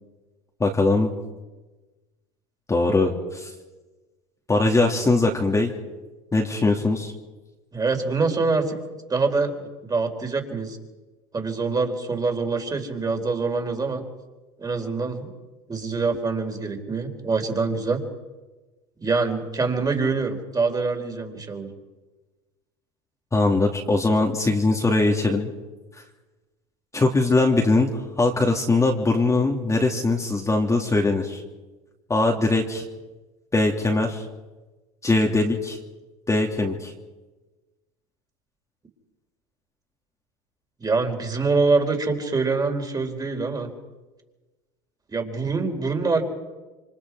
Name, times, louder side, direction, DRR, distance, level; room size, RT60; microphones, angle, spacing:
voice 1, 0.6-1.1 2.7-3.5 4.5-5.7 6.3-7.1 23.3-25.5 26.9-27.9 28.2-31.4 32.1-32.8 33.5-34.2 35.0-35.8 36.3-36.9, left 2 dB, 15° left, 0 dB, 2.7 m, -21 dB
voice 2, 7.7-8.8 9.1-10.8 11.3-14.0 14.6-15.3 15.7-18.0 19.0-21.7 40.8-43.7 45.1-46.2, right 4 dB, 20° right, 4 dB, 4.2 m, -25 dB
28.0 x 25.0 x 4.8 m, 1.2 s
hypercardioid pair, 90°, 19 cm